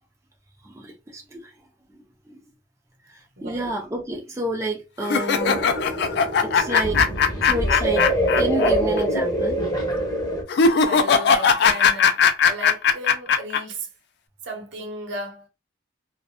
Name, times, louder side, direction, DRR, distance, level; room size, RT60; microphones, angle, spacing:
voice 1, 0.6-1.5 1.9-2.4 3.1-5.7 6.4-7.1 7.4-8.1 8.4-9.6, right 1 dB, 15° right, 0.4 m, -29 dB
voice 2, 3.4-3.7 10.7-13.9 14.4-15.5, right 1 dB, 65° right, 0.8 m, -35 dB
sound 1, 5.0-8.7 9.0-9.1 10.5-13.6, left 6 dB, 55° left, 0.3 m, -19 dB
sound 2, 5.4-10.4, right 1 dB, 20° left, 0.7 m, -24 dB
2.5 x 2.1 x 2.8 m
head